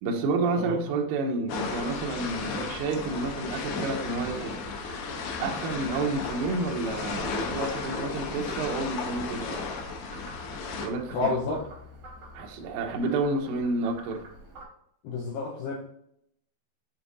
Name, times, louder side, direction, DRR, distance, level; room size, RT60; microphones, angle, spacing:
voice 1, 0.0-4.6 5.4-9.6 10.8-11.6 12.3-14.2, right 3 dB, 85° right, 2 dB, 1.8 m, -30 dB
sound 1, 1.5-10.9, left 4 dB, 90° left, 3.2 m, -34 dB
Frog, 4.0-14.6, right 1 dB, 70° right, 1.2 m, -47 dB
voice 2, 11.1-11.6 15.0-15.7, left 3 dB, 70° left, -3 dB, 2.4 m, -29 dB
7.4 x 3.6 x 4.0 m, 0.72 s
omnidirectional pair, 4.9 m